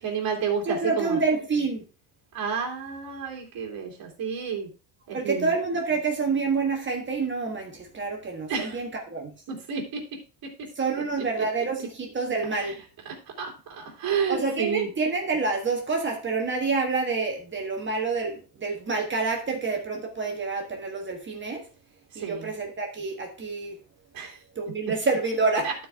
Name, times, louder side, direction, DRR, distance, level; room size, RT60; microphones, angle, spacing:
voice 1, 0.0-1.2 2.3-4.7 5.1-5.5 8.5-8.8 9.5-10.0 12.6-12.7 13.0-14.9 22.1-22.5 24.1-24.4 25.6-25.7, right 6 dB, 45° right, 0 dB, 2.9 m, -30 dB
voice 2, 0.6-1.8 5.1-9.3 10.8-12.7 14.3-21.6 22.1-23.8 24.5-25.7, right 4 dB, 25° right, 1 dB, 1.4 m, -28 dB
12.5 x 4.7 x 3.5 m, 0.34 s
cardioid pair, 145°, 48 cm